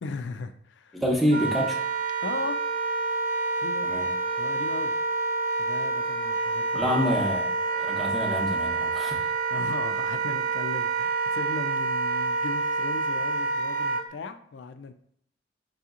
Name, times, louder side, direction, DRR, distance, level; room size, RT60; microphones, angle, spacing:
voice 1, 0.0-1.0 2.2-2.6 3.6-4.0 4.4-4.9 5.6-6.9 9.5-14.9, left 4 dB, 75° left, 9 dB, 0.4 m, -37 dB
voice 2, 0.9-1.8 3.8-4.1 6.7-9.2, equal, ahead, -2 dB, 0.6 m, -27 dB
Wind instrument woodwind instrument, 1.3-14.0, right 4 dB, 45° right, 0.5 m, -28 dB
5.3 x 2.8 x 2.4 m, 0.69 s
head